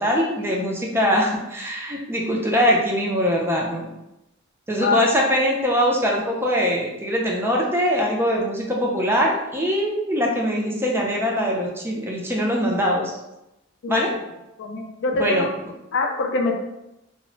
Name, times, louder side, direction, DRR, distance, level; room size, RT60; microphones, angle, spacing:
voice 1, 0.0-3.9 4.7-13.2 13.9-14.1 15.2-15.5, equal, 10° right, -1 dB, 0.4 m, -22 dB
voice 2, 14.6-15.5 15.9-16.6, left 3 dB, 60° left, 2 dB, 0.4 m, -23 dB
2.1 x 2.0 x 3.7 m, 0.91 s
head